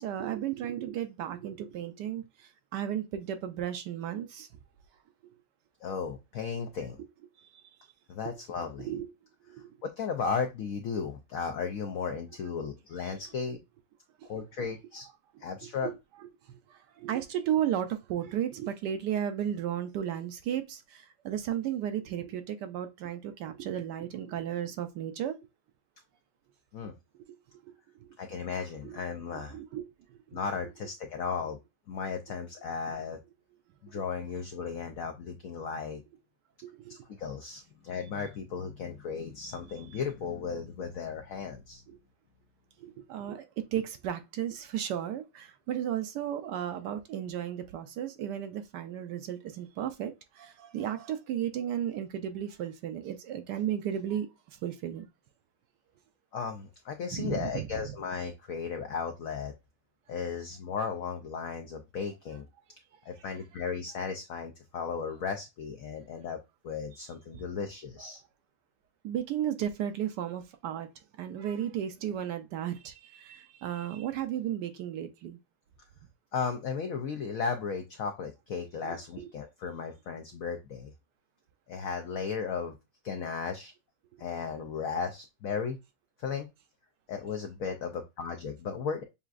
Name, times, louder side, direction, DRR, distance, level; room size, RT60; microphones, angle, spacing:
voice 1, 0.0-4.5 7.4-7.6 8.8-9.1 9.4-9.8 14.2-14.4 15.6-25.4 27.3-27.4 27.6-27.7 28.0-28.1 28.8-29.0 29.3-29.8 30.1-30.4 36.6-37.0 41.9-42.0 42.8-55.0 57.1-57.7 63.2-63.3 67.3-67.4 68.0-68.1 69.0-70.9 71.2-75.4 78.9-79.3, right 10 dB, 75° right, 1.1 m, -34 dB
voice 2, 5.8-7.0 8.1-8.9 9.8-13.6 14.3-15.1 15.4-15.9 26.7-26.9 28.2-29.6 30.3-31.6 31.9-33.2 33.8-36.0 36.9-41.8 56.3-59.5 60.1-62.4 63.1-66.4 66.6-68.2 76.3-80.9 81.7-82.7 83.0-83.7 84.2-85.8 86.2-86.5 87.1-89.0, left 5 dB, 85° left, 0.7 m, -35 dB
6.9 x 2.4 x 2.4 m
omnidirectional pair, 2.1 m